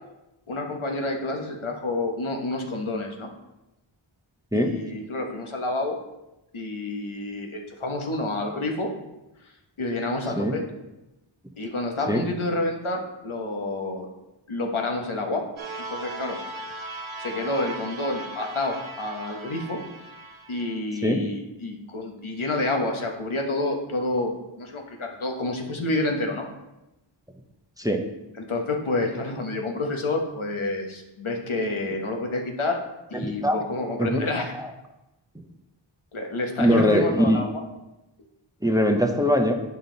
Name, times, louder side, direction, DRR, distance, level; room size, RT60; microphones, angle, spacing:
voice 1, 0.5-3.3 4.5-6.0 6.5-8.9 9.8-10.6 11.6-14.1 14.5-15.4 15.9-16.4 17.2-19.8 20.5-26.5 28.4-32.8 33.1-34.5 36.1-37.6, left 2 dB, 75° left, 2 dB, 1.3 m, -29 dB
sound 1, 15.6-20.8, right 2 dB, 70° right, 1.1 m, -38 dB
voice 2, 33.1-33.6 34.0-34.7 36.6-37.4 38.6-39.5, equal, 5° right, 4 dB, 0.8 m, -22 dB
8.8 x 5.5 x 3.9 m, 0.97 s
wide cardioid pair, 55°, 49 cm